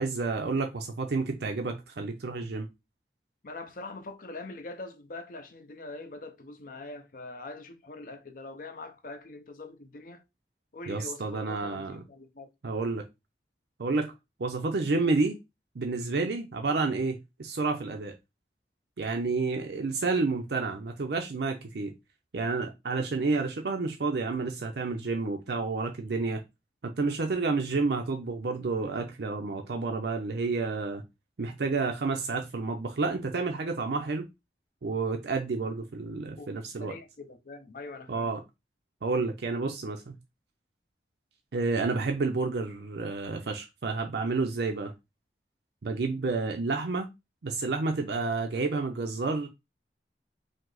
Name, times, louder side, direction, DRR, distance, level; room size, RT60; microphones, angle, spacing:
voice 1, 0.0-2.7 10.9-12.0 12.6-13.0 13.8-14.1 14.4-15.4 15.7-18.1 19.0-21.9 22.3-26.4 26.8-31.0 31.4-34.2 34.8-37.0 38.1-38.4 39.0-40.2 41.5-44.9 45.8-47.1 47.4-49.5, right 3 dB, 70° right, 0.5 m, -30 dB
voice 2, 3.4-10.2 10.7-12.5 36.4-38.3, left 3 dB, 50° left, 0.6 m, -43 dB
5.1 x 2.0 x 3.8 m
head